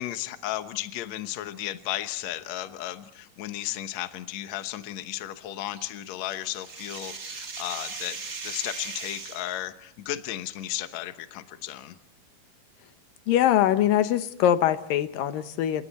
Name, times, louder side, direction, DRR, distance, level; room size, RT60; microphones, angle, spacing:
voice 1, 0.0-12.0, left 14 dB, 65° left, 10 dB, 2.1 m, -34 dB
sound 1, 5.7-9.5, right 4 dB, 65° right, 0.6 m, -38 dB
voice 2, 13.3-15.8, left 11 dB, 85° left, 11 dB, 2.7 m, -22 dB
29.5 x 27.0 x 4.3 m, 0.70 s
omnidirectional pair, 3.9 m